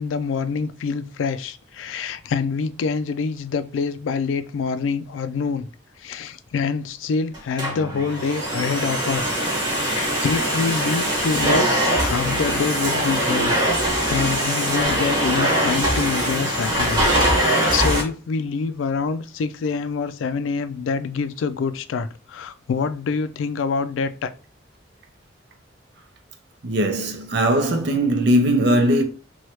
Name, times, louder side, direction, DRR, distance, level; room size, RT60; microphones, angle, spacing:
voice 1, 0.0-5.7 6.0-9.4 9.7-11.7 11.9-24.3, left 5 dB, 85° left, 0.3 m, -26 dB
Domestic sounds home sounds, 7.3-18.0, right 1 dB, 25° right, 0.9 m, -22 dB
voice 2, 26.6-29.0, right 1 dB, 60° right, 0.6 m, -19 dB
3.1 x 2.3 x 2.8 m
head